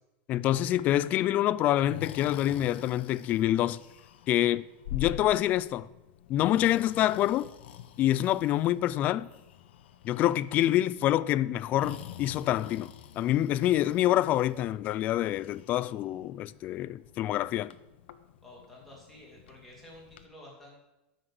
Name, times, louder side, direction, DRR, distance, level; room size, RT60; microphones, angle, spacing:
voice 1, 0.3-3.8 4.3-4.6 4.9-5.9 6.3-7.5 8.0-9.3 10.0-17.8, left 13 dB, 30° left, 0.3 m, -26 dB
Breathing, 0.6-20.3, left 11 dB, 85° left, 0.9 m, -47 dB
voice 2, 18.4-20.8, left 1 dB, ahead, 3.1 m, -51 dB
13.0 x 6.1 x 7.8 m
supercardioid pair, 170°, 6 cm